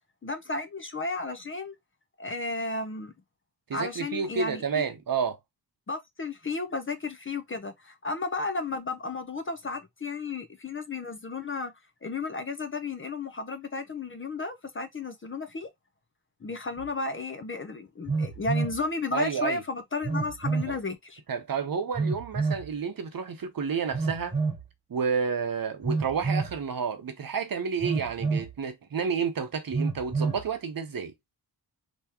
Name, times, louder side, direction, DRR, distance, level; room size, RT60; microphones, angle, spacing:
voice 1, 0.2-1.7 2.2-3.1 3.7-4.8 5.9-11.7 12.0-15.7 16.4-21.2, left 3 dB, 30° left, 0.6 m, -33 dB
voice 2, 3.7-5.4 19.1-19.6 20.7-20.8 21.3-24.4 24.9-31.1, right 6 dB, 50° right, 0.8 m, -30 dB
Telephone, 16.8-16.9 18.1-18.8 20.0-20.7 21.9-22.7 23.9-24.6 25.8-26.6 27.8-28.5 29.7-30.4, right 4 dB, 15° right, 1.6 m, -28 dB
3.5 x 3.0 x 2.9 m
wide cardioid pair, 110°, 43 cm